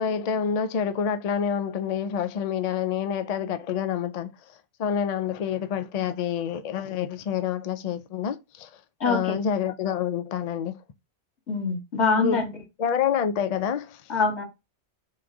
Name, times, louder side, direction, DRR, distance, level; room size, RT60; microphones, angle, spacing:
voice 1, 0.0-4.3 4.8-8.7 9.0-10.8 12.2-12.4 12.8-14.0, left 7 dB, 60° left, 0.4 m, -27 dB
voice 2, 9.0-9.4 11.5-12.5 14.1-14.4, left 4 dB, 75° left, 2.0 m, -24 dB
3.8 x 2.5 x 4.6 m
omnidirectional pair, 1.2 m